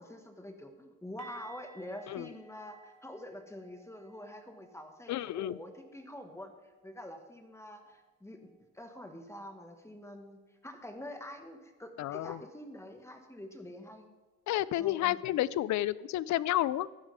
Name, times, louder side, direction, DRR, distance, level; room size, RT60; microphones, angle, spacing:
voice 1, 0.0-8.4 8.7-14.1 14.8-15.2, left 1 dB, 10° left, 5 dB, 1.8 m, -46 dB
sound 1, 1.2-7.0 7.2-7.5 7.8-8.0 11.2-11.3, right 4 dB, 65° right, 2.1 m, -58 dB
voice 2, 5.1-5.6 12.0-12.4 14.5-16.9, left 14 dB, 70° left, 20 dB, 0.5 m, -31 dB
15.5 x 11.0 x 3.7 m, 1.2 s
cardioid pair, 90°, 30 cm